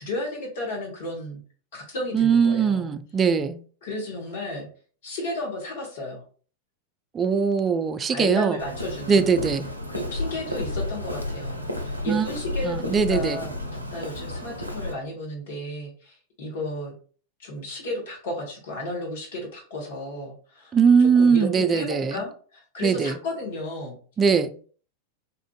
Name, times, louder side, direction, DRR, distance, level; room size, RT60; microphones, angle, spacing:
voice 1, 0.0-1.4 1.7-2.9 3.8-4.7 5.0-6.2 8.1-9.3 9.9-13.5 13.9-16.9 17.4-24.0, left 1 dB, 55° left, 1.1 m, -33 dB
voice 2, 2.1-3.6 7.1-8.6 9.1-9.7 12.1-12.3 12.6-13.4 20.7-22.2 22.8-23.2 24.2-24.5, right 6 dB, 20° right, 0.3 m, -21 dB
Walk footsteps, 8.6-14.9, left 1 dB, 85° right, 0.4 m, -32 dB
4.2 x 2.5 x 2.3 m
figure-of-eight pair, 90°, 0 cm